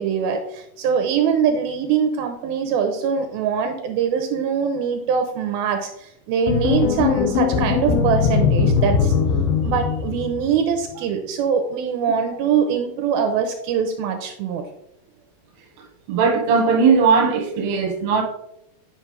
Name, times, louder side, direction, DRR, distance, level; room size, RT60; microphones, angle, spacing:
voice 1, 0.0-9.1 9.6-14.6, right 7 dB, 80° right, 2.4 m, -23 dB
sound 1, 6.5-10.7, left 6 dB, 70° left, 2.6 m, -20 dB
voice 2, 16.1-18.2, right 5 dB, 60° right, 1.9 m, -18 dB
8.8 x 6.0 x 3.3 m
omnidirectional pair, 4.6 m